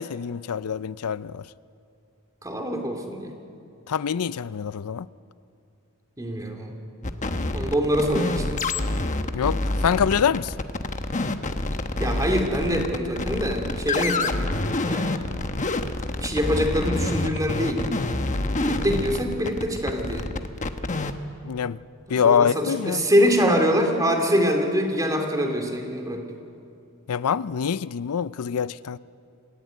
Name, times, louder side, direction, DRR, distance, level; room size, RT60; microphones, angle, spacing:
voice 1, 0.0-1.4 3.9-5.1 9.3-10.5 21.4-21.8 22.1-23.0 27.1-29.0, left 7 dB, 85° left, 0.5 m, -25 dB
voice 2, 2.4-3.3 6.2-6.7 7.5-8.6 12.0-14.5 14.9-15.2 16.2-17.8 18.6-20.3 22.1-26.2, equal, 15° right, 2.8 m, -24 dB
sound 1, 7.0-21.2, left 2 dB, 35° left, 1.1 m, -27 dB
26.5 x 15.5 x 9.3 m
head